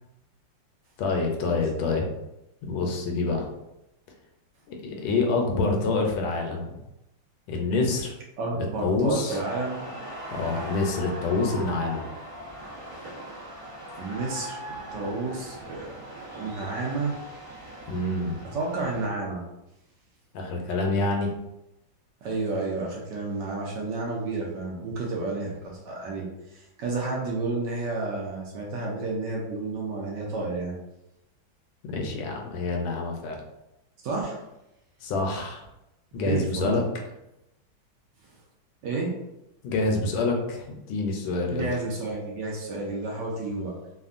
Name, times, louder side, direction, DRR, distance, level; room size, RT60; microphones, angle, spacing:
voice 1, 1.0-2.1 2.6-3.5 4.7-6.8 7.5-8.1 8.6-9.4 10.3-12.0 17.9-18.3 20.3-21.3 31.8-33.4 35.0-35.7 36.1-36.8 39.6-41.7, left 3 dB, 80° left, 1 dB, 1.3 m, -27 dB
voice 2, 8.4-9.9 14.0-14.6 14.9-15.9 16.4-17.1 18.5-19.4 22.2-26.3 26.5-30.8 34.0-34.4 36.1-36.8 38.8-39.1 41.5-43.7, right 3 dB, 75° right, -2 dB, 1.1 m, -31 dB
sound 1, 9.3-19.1, equal, 30° right, 0.6 m, -40 dB
3.4 x 2.2 x 2.4 m, 0.90 s
omnidirectional pair, 2.2 m